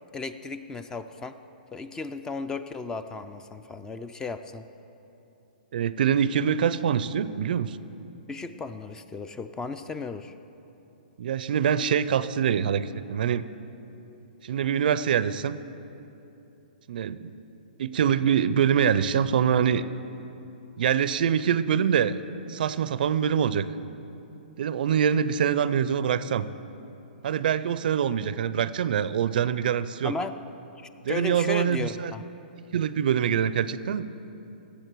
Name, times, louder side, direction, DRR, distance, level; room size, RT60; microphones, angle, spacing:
voice 1, 0.1-1.4 1.7-4.7 8.3-10.3 30.0-30.4 30.8-32.2, left 4 dB, 10° left, 11 dB, 0.4 m, -35 dB
voice 2, 5.7-7.8 11.2-13.4 14.4-15.6 16.9-17.3 17.8-19.8 20.8-22.1 22.5-23.7 24.6-26.5 27.2-30.1 31.0-32.1 32.7-34.0, right 8 dB, 65° right, 15 dB, 0.4 m, -24 dB
17.0 x 7.6 x 4.6 m, 2.9 s
hypercardioid pair, 135°, 5 cm